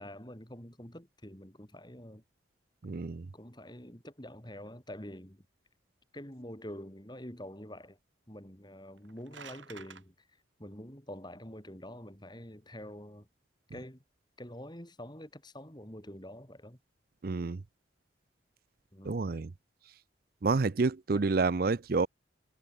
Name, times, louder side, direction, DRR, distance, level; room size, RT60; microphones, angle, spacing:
voice 1, 0.0-2.2 3.3-5.4 6.1-8.0 8.3-10.3 10.6-13.3 13.7-14.0 14.4-16.8 18.9-19.2 21.1-21.3, left 1 dB, 20° left, 4.6 m, -46 dB
voice 2, 2.8-3.3 17.2-17.6 19.0-19.5 20.4-22.1, right 3 dB, 50° right, 0.5 m, -29 dB
sound 1, 8.9-10.0, right 6 dB, 80° right, 7.1 m, -49 dB
head